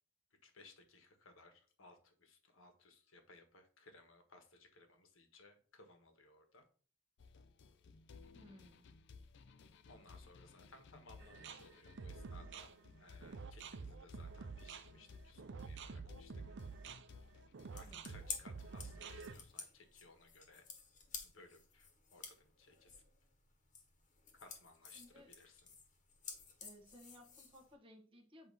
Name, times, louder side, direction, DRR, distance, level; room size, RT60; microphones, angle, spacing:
voice 1, 0.4-6.7 9.9-12.7 13.0-16.3 17.7-20.6 21.2-23.0 24.4-25.8, left 3 dB, 85° left, 6 dB, 1.4 m, -62 dB
sound 1, 7.2-19.5, left 4 dB, 60° left, 0.5 m, -59 dB
voice 2, 8.3-8.8 17.8-18.1 24.9-25.3 26.6-28.5, equal, 25° right, -1 dB, 1.2 m, -60 dB
sound 2, 11.2-19.3, right 5 dB, 65° right, 0.6 m, -49 dB
sound 3, 17.6-27.7, left 5 dB, 40° left, 1.2 m, -52 dB
7.8 x 2.8 x 5.4 m, 0.42 s
head